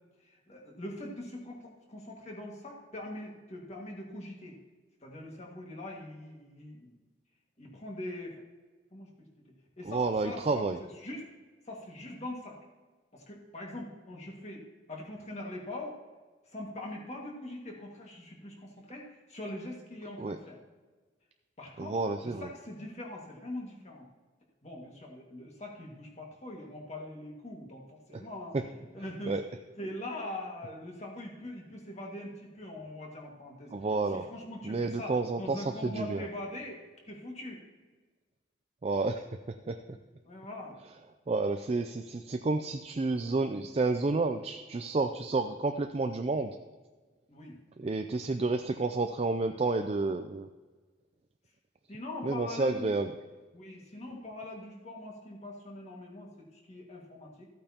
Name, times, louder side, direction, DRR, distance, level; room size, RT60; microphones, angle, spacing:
voice 1, 0.2-4.6 5.0-7.0 7.6-8.4 8.9-9.3 9.8-11.3 11.6-12.6 13.1-14.6 14.9-16.0 16.5-20.6 21.6-24.1 24.6-29.4 29.8-33.7 34.1-37.6 40.2-40.8 47.3-47.9 51.9-52.9 53.5-57.5, left 1 dB, 35° left, -1 dB, 1.9 m, -42 dB
voice 2, 9.9-10.8 20.2-20.4 21.8-22.5 28.5-28.6 29.3-29.4 33.7-34.2 34.6-36.2 38.8-39.3 39.7-39.8 41.3-46.6 47.8-50.5 52.2-53.1, right 3 dB, 35° right, 6 dB, 0.4 m, -30 dB
14.0 x 8.6 x 2.9 m, 1.3 s
head